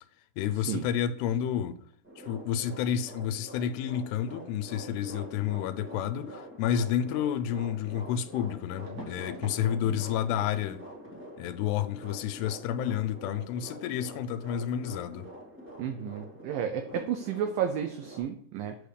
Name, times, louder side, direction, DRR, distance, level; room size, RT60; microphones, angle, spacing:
voice 1, 0.4-1.8 2.2-10.8 11.4-15.3, left 9 dB, 85° left, 2.6 m, -30 dB
sound 1, 2.0-18.2, equal, 10° right, 0.6 m, -46 dB
sound 2, 7.3-7.4 8.9-9.6 9.9-10.3 10.6-10.8 13.7-13.8 14.1-14.3 14.6-14.7, right 1 dB, 45° right, 2.1 m, -48 dB
voice 2, 15.8-18.8, right 8 dB, 90° right, 1.9 m, -32 dB
8.5 x 3.3 x 6.4 m
omnidirectional pair, 4.7 m